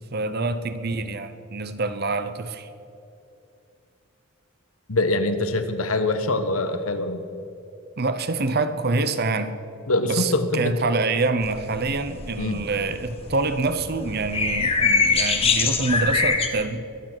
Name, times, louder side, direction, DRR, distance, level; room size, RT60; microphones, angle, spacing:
voice 1, 0.1-2.7 8.0-9.6 10.0-16.8, right 3 dB, 45° right, 11 dB, 0.8 m, -26 dB
voice 2, 4.9-7.2 9.9-10.7 12.4-12.6, left 2 dB, 80° left, 9 dB, 1.2 m, -24 dB
sound 1, 11.4-16.5, left 4 dB, 25° left, 1.1 m, -24 dB
22.5 x 8.8 x 6.1 m, 2.7 s
head